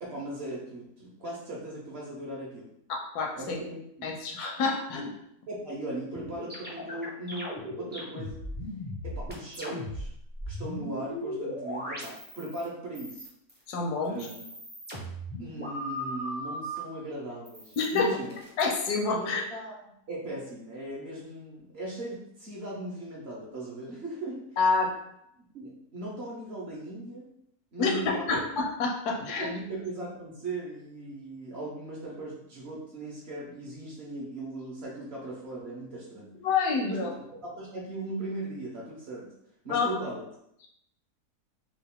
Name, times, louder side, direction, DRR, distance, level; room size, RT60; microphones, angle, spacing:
voice 1, 0.0-2.6 3.3-4.1 5.5-8.4 9.0-10.1 10.5-13.2 14.1-14.4 15.4-18.4 19.1-19.7 20.1-24.4 25.5-27.3 27.7-28.4 29.4-36.3 36.9-37.1 37.4-39.3 39.6-40.2, right 2 dB, 55° right, -5 dB, 0.8 m, -38 dB
voice 2, 2.9-3.6 4.0-5.1 13.7-14.3 17.8-18.2 18.6-19.4 24.6-25.0 27.8-29.5 36.4-37.1 39.7-39.9, left 4 dB, 80° left, 1 dB, 1.2 m, -28 dB
sound 1, 6.1-12.6 12.9-13.6 14.0-16.8 17.4-18.6, equal, 15° right, 0.4 m, -38 dB
3.1 x 2.4 x 3.5 m, 0.77 s
omnidirectional pair, 1.7 m